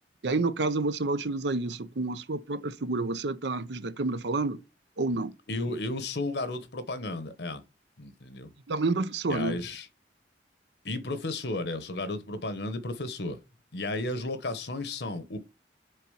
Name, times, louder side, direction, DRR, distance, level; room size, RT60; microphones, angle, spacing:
voice 1, 0.2-4.6 5.0-5.3 8.7-9.6, right 3 dB, 75° right, 0.7 m, -29 dB
voice 2, 5.5-7.6 8.0-8.5 9.3-9.9 10.8-13.4 13.7-15.4, left 2 dB, 65° left, 1.1 m, -33 dB
6.8 x 4.1 x 5.5 m
head